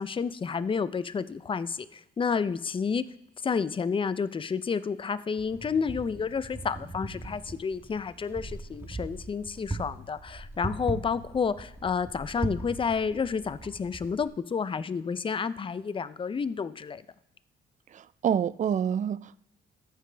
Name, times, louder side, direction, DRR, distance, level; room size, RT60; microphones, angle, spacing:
voice 1, 0.0-3.0 3.4-17.0, left 5 dB, 25° left, 0.5 m, -30 dB
Wind, 5.4-14.3, right 2 dB, 10° right, 1.3 m, -39 dB
voice 2, 17.9-19.4, right 8 dB, 40° right, 0.4 m, -27 dB
13.5 x 4.9 x 3.4 m
cardioid pair, 90°, 20 cm